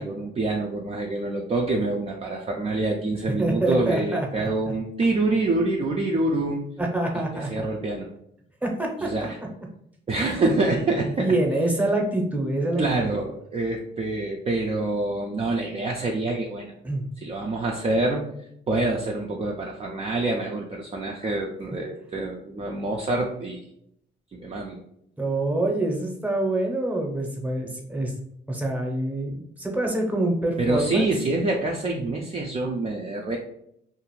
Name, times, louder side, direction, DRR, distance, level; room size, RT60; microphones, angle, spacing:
voice 1, 0.0-6.7 7.5-8.1 9.0-9.4 10.1-11.3 12.8-16.7 17.2-18.3 18.7-23.6 24.3-24.8 30.6-33.4, right 2 dB, 30° right, -1 dB, 0.4 m, -26 dB
voice 2, 3.4-4.7 6.8-7.7 8.6-9.1 10.4-10.7 11.2-12.8 16.8-17.1 25.2-28.1 28.5-31.1, right 1 dB, 10° right, 0 dB, 0.7 m, -26 dB
2.6 x 2.4 x 3.1 m, 0.73 s
cardioid pair, 90°, 20 cm